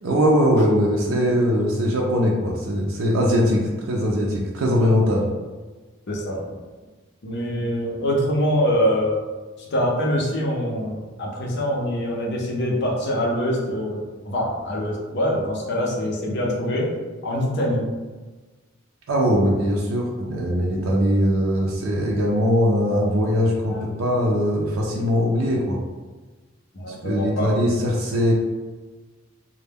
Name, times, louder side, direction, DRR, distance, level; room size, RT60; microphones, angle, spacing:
voice 1, 0.0-5.3 19.1-25.8 26.9-28.3, equal, 90° right, -2 dB, 0.4 m, -21 dB
voice 2, 6.1-6.6 7.2-9.1 9.6-16.9 17.2-17.9 23.7-23.8 26.7-27.5, equal, 60° left, -2 dB, 0.6 m, -24 dB
2.1 x 2.1 x 3.3 m, 1.3 s
head